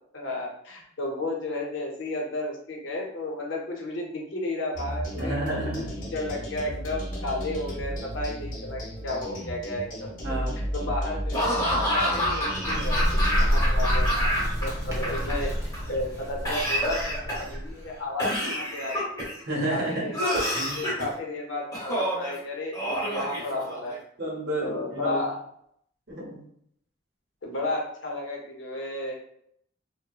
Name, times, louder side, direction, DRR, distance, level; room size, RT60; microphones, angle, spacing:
voice 1, 0.1-10.1 10.7-13.0 13.4-14.3 14.6-15.5 15.9-19.2 19.7-24.0 24.6-25.4 27.4-29.1, left 2 dB, 80° left, -1 dB, 0.7 m, -33 dB
sound 1, 4.7-14.2, equal, 45° left, 0.6 m, -34 dB
voice 2, 5.1-5.9 10.2-10.6 19.5-20.1 24.2-25.2 26.1-26.4, right 1 dB, 55° right, -3 dB, 0.8 m, -30 dB
Laughter / Cough, 11.3-14.6 14.9-15.8 16.5-17.6 18.2-19.4 20.1-21.1 21.7-22.3 22.7-23.9, equal, 20° left, 0.9 m, -27 dB
Bird, 12.3-18.0, equal, 15° right, 0.5 m, -28 dB
2.8 x 2.1 x 2.3 m, 0.69 s
head